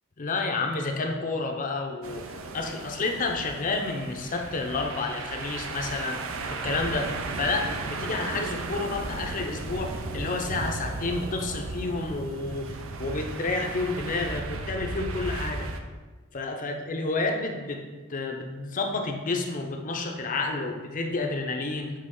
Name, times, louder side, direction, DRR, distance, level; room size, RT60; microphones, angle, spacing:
voice 1, 0.2-6.2 6.5-7.1 7.4-12.7 13.0-15.7 16.3-17.8 18.1-21.9, left 3 dB, 40° left, 3 dB, 0.6 m, -30 dB
sound 1, 2.0-15.8, right 3 dB, 70° right, 0.5 m, -35 dB
7.6 x 3.4 x 3.7 m, 1.3 s
head